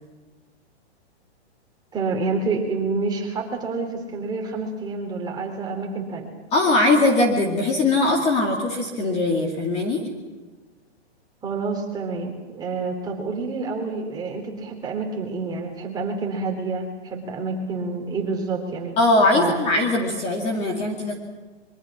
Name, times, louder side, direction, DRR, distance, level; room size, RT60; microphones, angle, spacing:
voice 1, 1.9-6.3 11.4-19.0 19.3-19.6, right 4 dB, 10° right, 1 dB, 3.5 m, -28 dB
voice 2, 6.5-10.0 19.0-21.1, left 2 dB, 20° left, 1 dB, 2.4 m, -20 dB
26.0 x 23.5 x 6.1 m, 1.3 s
hypercardioid pair, 160°, 34 cm